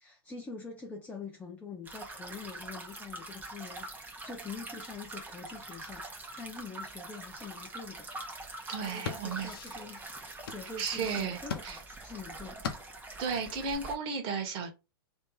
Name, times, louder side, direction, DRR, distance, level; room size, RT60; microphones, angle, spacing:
voice 1, 0.0-8.1 8.8-10.1 10.5-12.7, left 4 dB, 10° left, 0.8 m, -45 dB
sound 1, 1.9-13.9, right 2 dB, 15° right, 1.2 m, -44 dB
sound 2, 8.7-13.7, left 6 dB, 70° left, 1.0 m, -42 dB
voice 2, 8.7-9.5 10.8-11.4 11.6-11.8 13.2-14.7, right 5 dB, 40° right, 1.6 m, -34 dB
3.2 x 3.1 x 4.1 m
hypercardioid pair, 120°, 13 cm